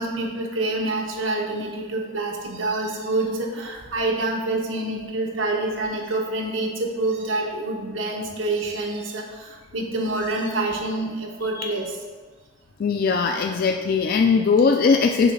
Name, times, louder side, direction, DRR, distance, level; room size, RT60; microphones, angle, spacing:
voice 1, 0.0-12.0, right 2 dB, 80° right, 0 dB, 1.1 m, -27 dB
voice 2, 12.8-15.3, left 5 dB, 50° left, 4 dB, 0.3 m, -20 dB
7.0 x 3.2 x 5.9 m, 1.5 s
head